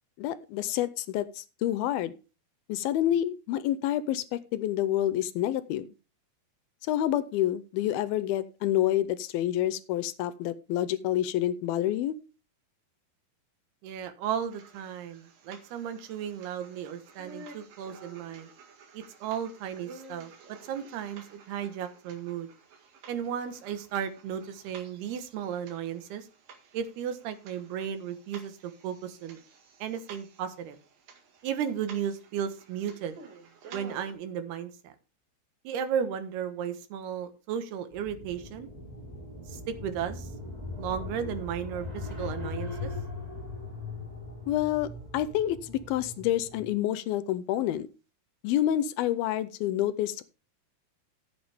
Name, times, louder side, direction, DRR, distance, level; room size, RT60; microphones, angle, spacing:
voice 1, 0.2-2.1 2.7-5.9 6.8-12.2 44.5-47.9 48.4-50.2, left 12 dB, 80° left, 15 dB, 2.4 m, -28 dB
voice 2, 13.8-18.5 18.9-22.5 23.1-26.3 26.7-29.4 29.8-30.8 31.4-33.2 33.7-34.9 35.6-38.7 39.5-40.3 40.8-42.9, right 8 dB, 80° right, 9 dB, 3.3 m, -35 dB
sound 1, 14.5-34.1, right 4 dB, 65° right, 3.4 m, -52 dB
sound 2, 37.9-46.7, left 3 dB, 10° right, 2.8 m, -39 dB
14.5 x 8.7 x 3.5 m, 0.33 s
omnidirectional pair, 4.5 m